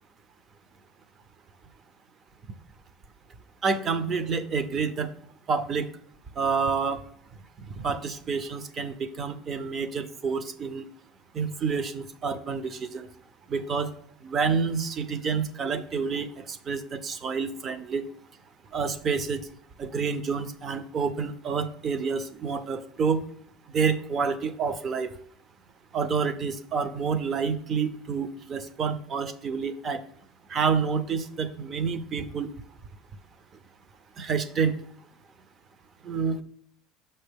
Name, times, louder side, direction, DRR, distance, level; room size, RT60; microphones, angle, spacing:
voice 1, 3.6-5.1 5.5-5.9 6.4-7.0 7.8-10.9 11.3-13.1 13.5-13.9 14.2-18.0 18.7-19.4 19.8-23.2 23.7-25.1 25.9-30.0 30.5-32.5 34.2-34.7 36.0-36.4, right 5 dB, 25° right, 13 dB, 0.4 m, -28 dB
6.4 x 5.4 x 3.4 m, 0.66 s
cardioid pair, 170°, 0 cm